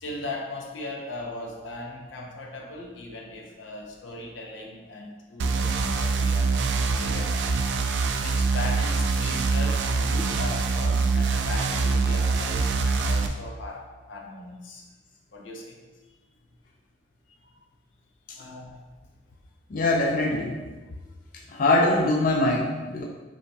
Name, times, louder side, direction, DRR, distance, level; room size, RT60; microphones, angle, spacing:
voice 1, 0.0-6.5 6.9-7.6 8.2-14.9 15.3-15.8 17.5-17.6 18.3-18.8, left 2 dB, 85° left, 0 dB, 0.6 m, -38 dB
sound 1, 5.4-13.3, right 4 dB, 65° right, 0.3 m, -24 dB
voice 2, 19.7-20.6 21.5-23.0, left 2 dB, 45° left, -1 dB, 0.3 m, -22 dB
5.2 x 2.8 x 2.3 m, 1.3 s
head